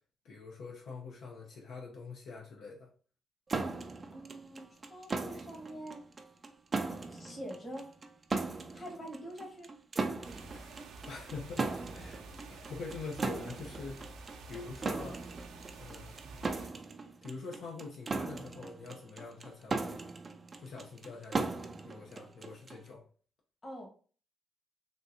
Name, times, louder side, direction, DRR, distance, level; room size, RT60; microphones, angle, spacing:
voice 1, 0.2-2.9 11.0-12.2 12.5-14.0 14.5-15.2 15.8-16.1 17.2-20.0 20.6-23.0, left 4 dB, 70° left, -1 dB, 0.7 m, -45 dB
sound 1, 3.5-22.9, right 3 dB, 30° right, 0.4 m, -38 dB
voice 2, 4.1-6.0 7.1-7.9 8.7-9.7 10.5-10.9 23.6-23.9, equal, 30° left, 1 dB, 1.3 m, -45 dB
sound 2, 10.2-16.7, right 3 dB, 80° right, 0.6 m, -49 dB
3.7 x 2.5 x 2.7 m, 0.41 s
cardioid pair, 90°, 0 cm